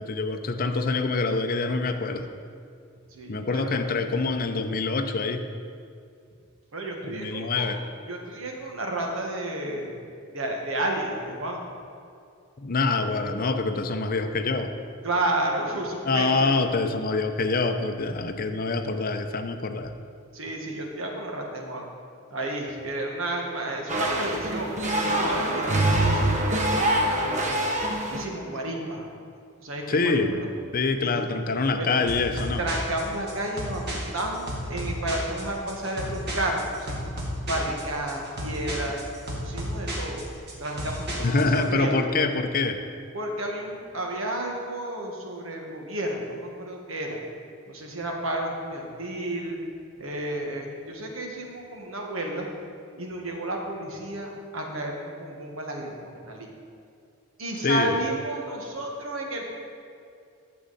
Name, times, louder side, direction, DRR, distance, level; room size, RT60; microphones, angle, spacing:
voice 1, 0.0-2.3 3.3-5.4 7.0-7.8 12.6-14.7 16.0-19.9 29.9-30.4 30.7-32.6 41.2-42.8 57.6-58.0, left 3 dB, 45° left, 7 dB, 0.6 m, -25 dB
voice 2, 3.1-4.0 6.7-10.0 10.3-11.7 15.0-16.6 20.3-21.9 22.3-24.7 25.1-27.6 28.1-29.1 29.6-30.5 31.0-31.1 31.7-32.0 32.6-37.1 37.5-39.0 39.4-40.3 40.6-42.0 43.1-47.2 47.7-49.6 50.0-52.5 52.9-56.5 57.4-59.6, right 1 dB, 65° right, 1 dB, 1.5 m, -32 dB
sound 1, 23.9-28.3, right 1 dB, 35° right, 0.9 m, -24 dB
sound 2, 32.1-41.6, equal, 50° right, 2.0 m, -33 dB
11.5 x 7.6 x 4.1 m, 2.4 s
head